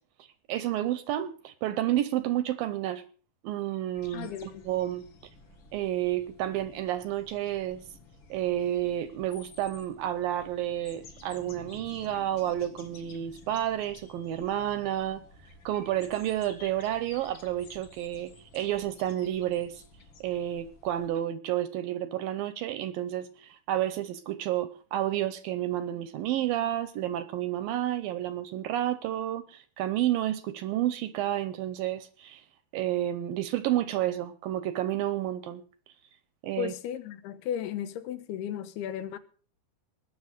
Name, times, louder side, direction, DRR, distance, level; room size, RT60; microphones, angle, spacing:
voice 1, 0.5-3.0 3.4-5.0 5.7-7.8 8.3-15.2 15.7-19.8 20.2-32.4 32.7-35.6 36.4-36.7, right 12 dB, 75° right, 2.2 m, -30 dB
sound 1, 3.9-21.1, left 3 dB, 45° left, 1.7 m, -53 dB
voice 2, 4.1-4.7 36.6-39.2, left 9 dB, 80° left, 2.9 m, -35 dB
20.0 x 7.0 x 6.5 m
omnidirectional pair, 4.6 m